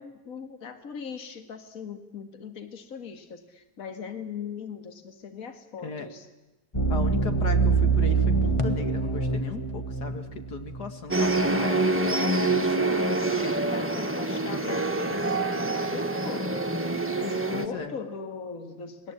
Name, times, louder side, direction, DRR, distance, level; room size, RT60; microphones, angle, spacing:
voice 1, 0.0-6.3 12.1-16.8 17.2-19.1, left 6 dB, 55° left, 8 dB, 2.3 m, -39 dB
sound 1, 6.7-11.2 11.4-11.6, right 4 dB, 20° left, 1.6 m, -25 dB
voice 2, 6.9-11.9 12.4-12.6 17.5-18.0, left 4 dB, 75° left, 8 dB, 2.4 m, -36 dB
sound 2, 11.1-17.7, right 2 dB, 10° right, 1.6 m, -26 dB
29.5 x 21.0 x 8.8 m, 1.0 s
omnidirectional pair, 1.8 m